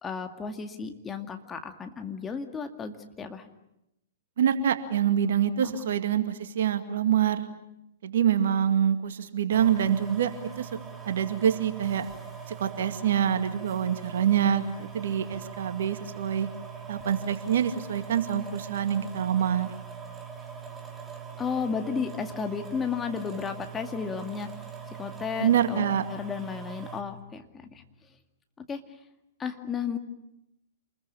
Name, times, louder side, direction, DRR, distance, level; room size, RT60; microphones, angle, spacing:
voice 1, 0.0-3.5 5.6-5.9 21.4-24.5 25.0-27.8 28.7-28.8 29.4-30.0, left 6 dB, 15° left, 6 dB, 2.2 m, -33 dB
voice 2, 4.4-7.4 8.0-10.3 10.6-10.7 11.0-12.1 12.5-16.5 16.9-19.7 25.4-26.1, right 9 dB, 60° right, 9 dB, 2.2 m, -26 dB
sound 1, 9.5-27.0, right 6 dB, 10° right, 3.4 m, -42 dB
28.0 x 21.5 x 8.7 m, 0.85 s
figure-of-eight pair, 110°, 0 cm